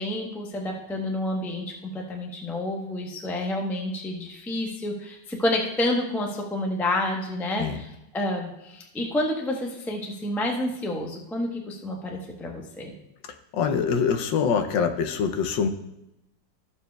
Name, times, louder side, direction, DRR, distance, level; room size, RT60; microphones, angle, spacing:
voice 1, 0.0-13.0, left 1 dB, ahead, 0 dB, 0.4 m, -29 dB
voice 2, 13.5-15.7, left 6 dB, 75° left, 7 dB, 1.4 m, -24 dB
14.0 x 7.0 x 2.3 m, 0.88 s
omnidirectional pair, 2.1 m